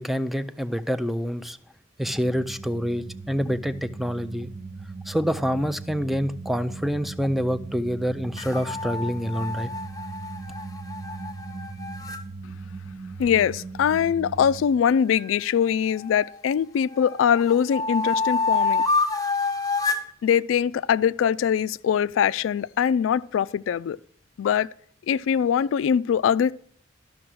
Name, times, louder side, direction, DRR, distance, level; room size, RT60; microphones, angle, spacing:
voice 1, 0.0-1.6 2.0-4.5 5.1-9.7, equal, ahead, 0.4 m, -27 dB
sound 1, 2.0-14.6, right 4 dB, 45° right, 0.8 m, -39 dB
sound 2, 8.4-12.2 15.1-16.4 16.9-20.1, left 3 dB, 20° left, 0.7 m, -28 dB
voice 2, 13.2-18.8 20.2-24.0 24.4-24.7 25.1-26.5, left 8 dB, 80° left, 0.3 m, -22 dB
12.5 x 5.8 x 6.1 m
head